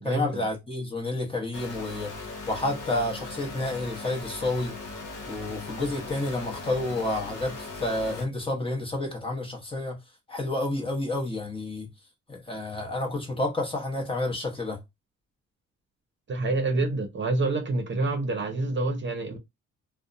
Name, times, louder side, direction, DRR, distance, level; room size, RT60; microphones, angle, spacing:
voice 1, 0.0-2.1 2.5-4.7 5.3-10.0 10.3-11.9 12.3-14.8, left 2 dB, 20° left, 1.0 m, -30 dB
sound 1, 1.5-8.3, left 3 dB, 85° left, 0.9 m, -39 dB
voice 2, 16.3-19.4, right 2 dB, 40° right, 0.8 m, -27 dB
2.6 x 2.2 x 2.5 m
cardioid pair, 90°, 30 cm